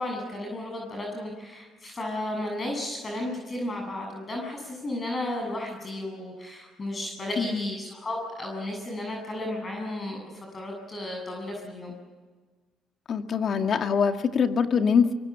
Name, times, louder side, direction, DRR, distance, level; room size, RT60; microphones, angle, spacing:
voice 1, 0.0-11.9, left 1 dB, 30° left, 1 dB, 7.6 m, -33 dB
voice 2, 7.4-7.7 13.1-15.1, left 6 dB, 50° left, 6 dB, 2.1 m, -24 dB
25.0 x 24.0 x 7.4 m, 1.4 s
supercardioid pair, 85°, 0 cm